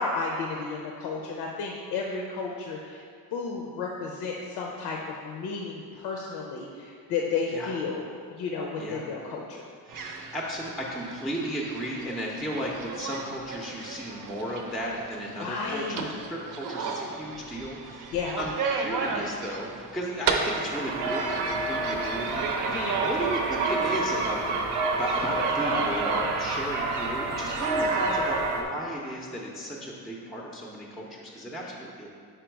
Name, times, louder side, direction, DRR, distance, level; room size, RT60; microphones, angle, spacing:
voice 1, 0.0-3.0 3.3-8.1 8.4-9.6 15.4-16.1 18.1-18.4 22.7-23.0, left 4 dB, 85° left, -1 dB, 0.7 m, -32 dB
voice 2, 9.9-24.4 24.9-32.1, right 1 dB, ahead, -2 dB, 0.5 m, -35 dB
sound 1, 9.9-26.4, right 4 dB, 55° right, 0.6 m, -35 dB
sound 2, 20.3-28.6, right 3 dB, 90° right, 0.8 m, -28 dB
5.1 x 4.5 x 4.5 m, 2.2 s
cardioid pair, 130°, 39 cm